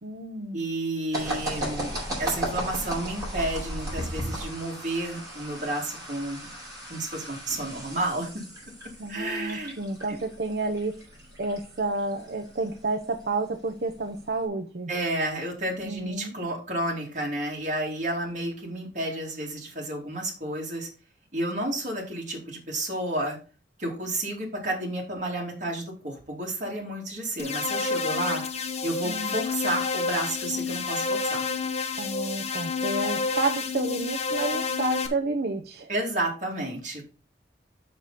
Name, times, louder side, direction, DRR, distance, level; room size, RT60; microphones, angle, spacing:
voice 1, 0.0-0.6 9.0-11.0 11.4-14.9 15.9-16.3 29.0-29.3 32.0-35.9, right 3 dB, 60° right, 5 dB, 0.7 m, -30 dB
voice 2, 0.5-1.9 2.2-6.5 6.9-8.3 9.1-9.8 10.1-10.2 14.9-20.9 21.3-23.4 23.8-28.4 28.8-31.4 35.9-37.0, right 1 dB, 45° right, -1 dB, 2.7 m, -31 dB
sound 1, 1.1-14.4, right 1 dB, 20° right, 4.7 m, -36 dB
sound 2, 27.4-35.1, left 4 dB, 35° left, 0.9 m, -29 dB
6.7 x 6.6 x 4.1 m, 0.36 s
head